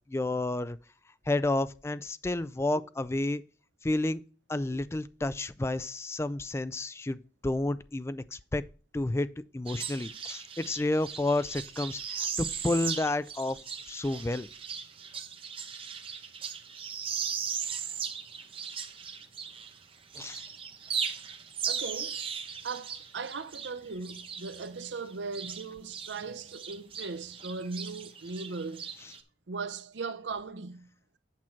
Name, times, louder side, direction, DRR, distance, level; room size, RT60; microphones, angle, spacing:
voice 1, 0.1-0.8 1.3-3.4 3.8-4.2 4.5-8.6 8.9-9.3 9.5-13.6 13.9-14.5 20.2-20.4, left 2 dB, 15° left, 0.3 m, -30 dB
sound 1, 9.7-19.8 20.1-26.2 26.5-29.2, right 7 dB, 30° right, 0.8 m, -38 dB
voice 2, 21.7-22.2 22.6-28.9 29.5-30.9, right 4 dB, 80° right, 0.7 m, -38 dB
8.6 x 5.9 x 4.4 m
head